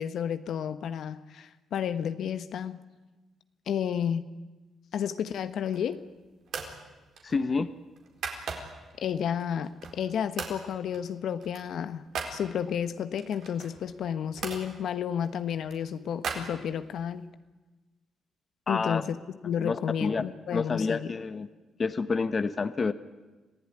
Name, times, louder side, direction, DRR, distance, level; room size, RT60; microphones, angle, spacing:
voice 1, 0.0-2.8 3.7-4.3 4.9-6.0 9.0-12.0 12.3-17.3 18.7-19.2 19.4-21.1, left 8 dB, 70° left, 11 dB, 1.2 m, -31 dB
sound 1, 5.5-6.0 6.5-6.8 7.2-8.9 9.4-10.1 10.4-10.6 10.9-12.4 13.2-14.6 15.2-17.1, right 5 dB, 65° right, 4.3 m, -39 dB
voice 2, 7.2-7.7 18.7-19.0 19.6-20.2 20.5-21.5 21.8-22.9, left 4 dB, 35° left, 12 dB, 1.0 m, -28 dB
26.5 x 16.0 x 10.0 m, 1.2 s
cardioid pair, 90°, 0 cm